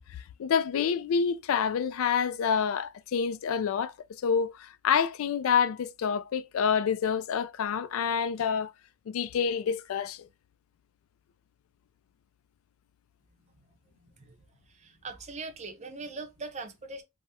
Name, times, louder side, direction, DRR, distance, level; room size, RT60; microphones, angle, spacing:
voice 1, 0.4-3.9 4.2-8.7 9.1-10.3, left 7 dB, 70° left, 0.3 m, -27 dB
voice 2, 14.0-14.3 14.7-17.0, right 3 dB, 30° right, 0.6 m, -41 dB
3.4 x 2.0 x 2.7 m
head